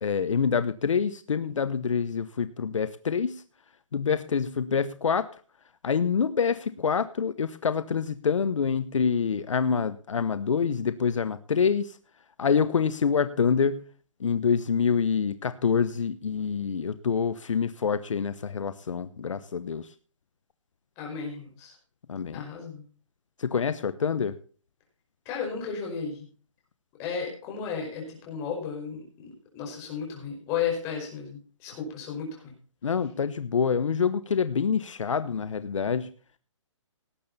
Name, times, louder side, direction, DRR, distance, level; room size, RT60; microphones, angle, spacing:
voice 1, 0.0-3.4 3.9-5.3 5.8-12.0 12.4-13.9 14.2-19.9 22.1-22.4 23.4-24.4 32.8-36.1, left 6 dB, 75° left, 13 dB, 1.1 m, -26 dB
voice 2, 21.0-21.8 22.3-22.8 25.3-26.3 27.0-32.5, left 6 dB, 20° left, 0 dB, 5.1 m, -34 dB
18.5 x 8.8 x 4.2 m, 0.40 s
hypercardioid pair, 170°, 16 cm